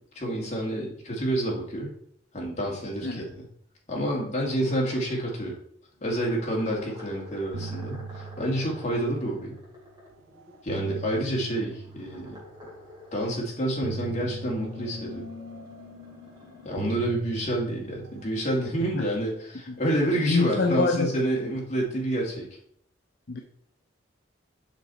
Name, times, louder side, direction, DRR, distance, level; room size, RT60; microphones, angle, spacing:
voice 1, 0.2-1.9 2.3-3.4 3.9-5.6 6.0-9.6 10.6-12.4 13.1-15.3 16.6-22.5, right 1 dB, 35° left, -3 dB, 2.1 m, -28 dB
sound 1, 4.5-5.1 5.9-10.9 11.5-13.4 13.9-17.0, left 3 dB, 20° right, 2.9 m, -46 dB
sound 2, 6.9-7.1 7.4-9.7 10.4-12.8 13.8-16.3 16.8-19.3, right 5 dB, 90° right, 0.5 m, -41 dB
voice 2, 20.3-21.1 23.3-23.4, left 4 dB, 55° left, 4 dB, 0.6 m, -26 dB
7.3 x 5.2 x 4.1 m, 0.65 s
head